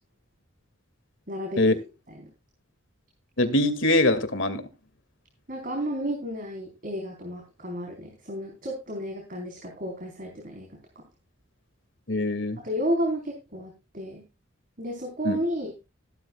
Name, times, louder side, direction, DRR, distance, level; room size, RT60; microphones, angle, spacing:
voice 1, 1.3-1.6 5.5-10.7 11.0-11.1 12.6-14.2 14.8-15.7, equal, 45° right, 1 dB, 4.2 m, -32 dB
voice 2, 3.4-4.6 12.1-12.6 15.2-15.4, left 1 dB, 70° left, 11 dB, 2.2 m, -23 dB
15.5 x 13.0 x 2.3 m, 0.27 s
head